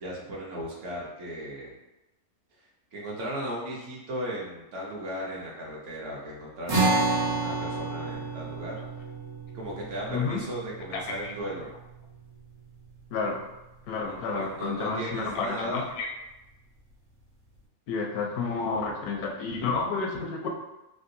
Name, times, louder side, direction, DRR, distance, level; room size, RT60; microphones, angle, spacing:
voice 1, 0.0-1.8 2.9-8.7 9.5-11.7 14.1-15.9, equal, 60° right, -3 dB, 1.0 m, -36 dB
sound 1, 6.7-13.3, right 3 dB, 80° right, 1.4 m, -31 dB
voice 2, 10.1-10.4 10.9-11.3 13.1-13.5 13.9-16.1 17.9-20.5, left 4 dB, 80° left, 1 dB, 1.1 m, -30 dB
3.6 x 2.3 x 2.6 m, 0.95 s
omnidirectional pair, 1.5 m